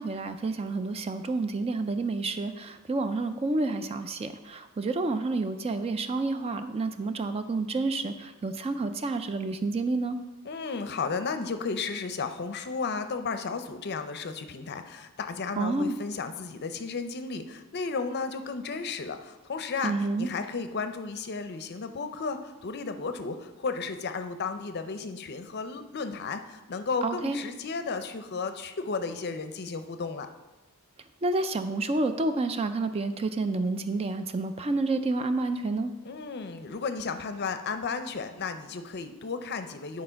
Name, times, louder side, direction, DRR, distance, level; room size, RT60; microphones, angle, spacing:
voice 1, 0.0-10.2 15.6-16.0 19.8-20.3 27.0-27.4 31.2-35.9, right 3 dB, 25° right, 9 dB, 0.4 m, -29 dB
voice 2, 10.4-30.3 36.0-40.0, left 4 dB, 50° left, 9 dB, 0.6 m, -34 dB
10.0 x 4.2 x 5.7 m, 1.1 s
head